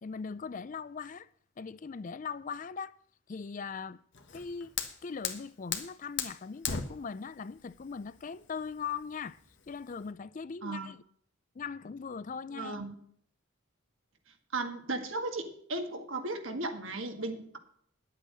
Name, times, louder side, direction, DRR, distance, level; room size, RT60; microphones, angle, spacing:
voice 1, 0.0-1.3 1.6-3.0 3.3-4.0 4.3-4.7 5.0-9.4 9.7-11.0 11.6-12.8, left 5 dB, 40° left, 0.4 m, -40 dB
Fire, 4.1-10.1, left 7 dB, 55° left, 1.4 m, -39 dB
voice 2, 10.6-10.9 12.5-13.0 14.5-17.6, right 2 dB, 70° right, 1.8 m, -36 dB
10.5 x 8.5 x 6.1 m
head